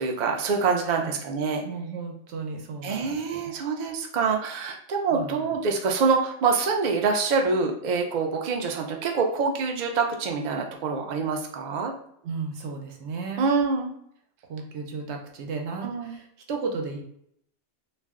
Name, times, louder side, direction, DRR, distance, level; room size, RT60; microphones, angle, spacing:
voice 1, 0.0-1.6 2.8-11.9 13.4-13.9 15.8-16.2, right 4 dB, 60° right, 2 dB, 0.5 m, -25 dB
voice 2, 0.8-1.2 1.6-3.5 5.1-5.5 12.2-13.5 14.5-17.0, right 4 dB, 75° right, 2 dB, 0.9 m, -34 dB
2.4 x 2.1 x 3.5 m, 0.70 s
omnidirectional pair, 1.2 m